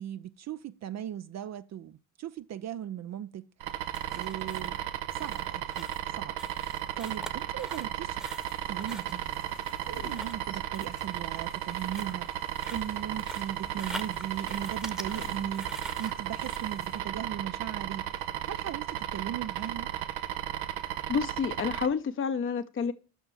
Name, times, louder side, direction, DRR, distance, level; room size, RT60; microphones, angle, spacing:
voice 1, 0.0-3.5 3.8-4.8 5.2-6.4 6.6-8.2 8.7-9.4 9.9-15.7 16.0-19.9, right 10 dB, 45° right, 0.5 m, -38 dB
sound 1, 3.6-21.9, right 12 dB, 80° right, 0.7 m, -35 dB
sound 2, 3.9-16.8, equal, ahead, 1.0 m, -46 dB
sound 3, 8.1-17.0, left 6 dB, 80° left, 1.5 m, -53 dB
voice 2, 21.1-22.9, left 6 dB, 35° left, 0.7 m, -29 dB
5.9 x 5.7 x 7.0 m
hypercardioid pair, 55°, 37 cm